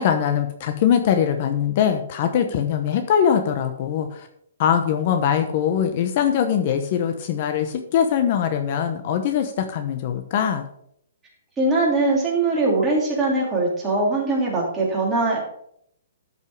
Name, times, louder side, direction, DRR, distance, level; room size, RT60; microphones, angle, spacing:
voice 1, 0.0-4.3 4.6-10.7, left 8 dB, 40° left, 7 dB, 1.0 m, -22 dB
voice 2, 11.6-15.5, right 2 dB, 10° right, -4 dB, 3.2 m, -21 dB
12.5 x 5.5 x 4.8 m, 0.69 s
hypercardioid pair, 160°, 0 cm